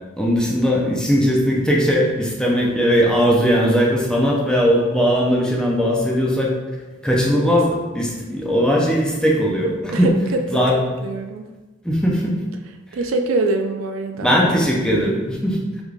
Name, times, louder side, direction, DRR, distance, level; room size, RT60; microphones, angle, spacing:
voice 1, 0.2-6.5 7.0-10.1 10.5-10.8 11.8-12.4 14.2-15.6, equal, 5° left, -3 dB, 0.6 m, -19 dB
voice 2, 9.9-11.5 12.9-14.3, right 2 dB, 65° right, 5 dB, 0.4 m, -24 dB
4.8 x 3.5 x 2.4 m, 1.2 s
head